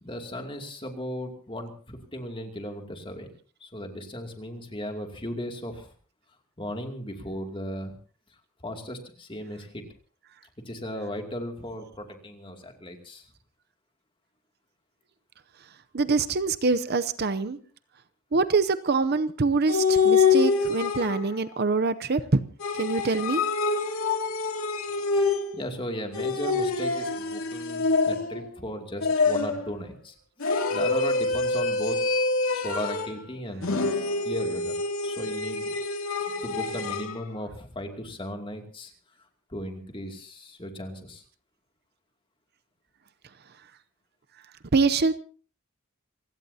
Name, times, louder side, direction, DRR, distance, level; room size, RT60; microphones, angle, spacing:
voice 1, 0.0-3.3 3.6-5.9 6.6-7.9 8.6-9.8 10.6-13.3 25.1-25.3 25.5-32.0 32.5-33.8 34.2-35.8 36.4-38.9 39.5-41.2, equal, 25° left, 2.6 m, -36 dB
voice 2, 15.9-17.6 18.3-22.4 22.8-23.4 44.7-45.1, right 4 dB, 50° right, 0.7 m, -24 dB
sound 1, 19.7-21.4 22.6-25.7 26.1-28.5 29.0-29.7 30.4-33.2 33.6-37.1, left 4 dB, 90° left, 2.4 m, -26 dB
28.0 x 17.0 x 2.8 m
head